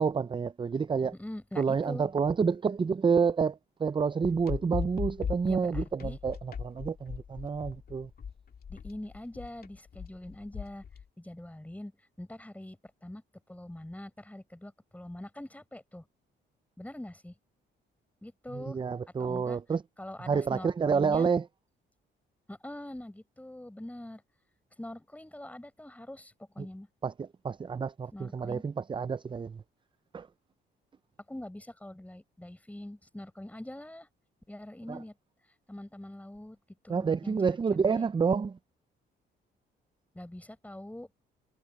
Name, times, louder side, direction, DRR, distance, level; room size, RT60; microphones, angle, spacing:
voice 1, 0.0-1.1 1.6-8.1 18.5-19.8 20.2-21.5 27.0-29.6 30.1-30.3 34.9-35.0 36.9-38.6, right 5 dB, 25° right, 0.5 m, -29 dB
voice 2, 1.1-2.1 5.4-6.2 8.7-10.8 11.2-11.9 12.2-13.2 13.5-16.1 16.8-17.3 18.2-18.8 19.2-19.6 20.0-21.3 22.5-24.2 24.8-26.9 28.1-28.6 31.3-34.1 34.5-35.1 35.7-36.6 36.8-37.4 37.9-38.1 40.1-41.1, left 1 dB, 5° left, 5.6 m, -43 dB
sound 1, 4.2-11.0, left 7 dB, 50° left, 2.2 m, -38 dB
cardioid pair, 90°, 20 cm